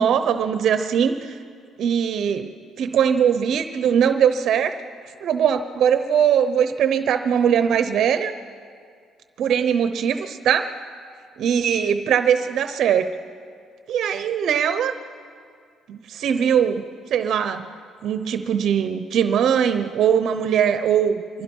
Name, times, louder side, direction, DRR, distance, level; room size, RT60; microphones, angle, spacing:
voice 1, 0.0-1.4 1.8-2.5 2.8-4.8 5.2-8.3 9.4-10.7 11.4-13.1 13.9-14.9 15.9-16.8 17.1-17.7 18.0-21.4, right 8 dB, 65° right, 9 dB, 0.9 m, -21 dB
25.0 x 22.5 x 5.5 m, 2.2 s
cardioid pair, 120°, 0 cm